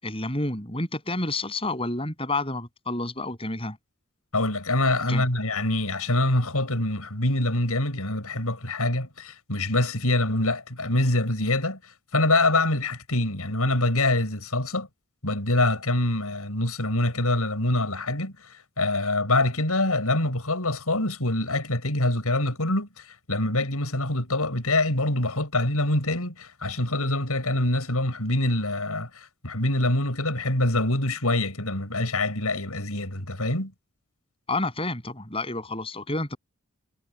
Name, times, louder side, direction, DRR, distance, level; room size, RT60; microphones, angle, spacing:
voice 1, 0.0-3.8 5.1-5.2 34.5-36.4, left 2 dB, 25° left, 7.8 m, -29 dB
voice 2, 4.3-11.8 12.1-14.9 15.2-18.3 18.8-22.9 23.3-33.7, left 2 dB, 90° left, 6.9 m, -25 dB
head